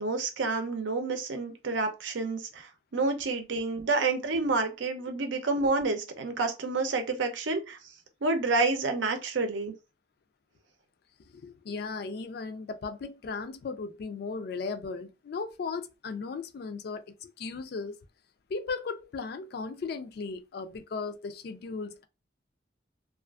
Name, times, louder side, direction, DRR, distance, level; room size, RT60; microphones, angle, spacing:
voice 1, 0.0-7.8 8.2-9.7, right 3 dB, 90° right, 0.6 m, -29 dB
voice 2, 11.3-18.0 18.5-22.0, left 4 dB, 55° left, 0.3 m, -36 dB
2.4 x 2.4 x 2.3 m
head